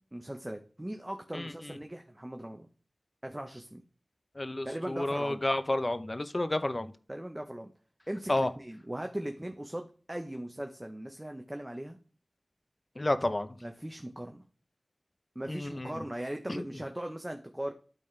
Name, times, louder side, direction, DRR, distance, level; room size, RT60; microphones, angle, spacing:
voice 1, 0.1-2.7 3.2-3.8 4.6-5.4 7.1-7.7 8.1-12.0 13.6-14.4 15.3-17.7, right 1 dB, 15° right, 5 dB, 0.8 m, -39 dB
voice 2, 1.3-1.8 4.4-6.9 8.3-8.5 13.0-13.6 15.5-16.0 16.5-16.6, left 1 dB, 35° left, 11 dB, 0.7 m, -31 dB
12.0 x 4.2 x 3.3 m, 0.40 s
wide cardioid pair, 65°, 0 cm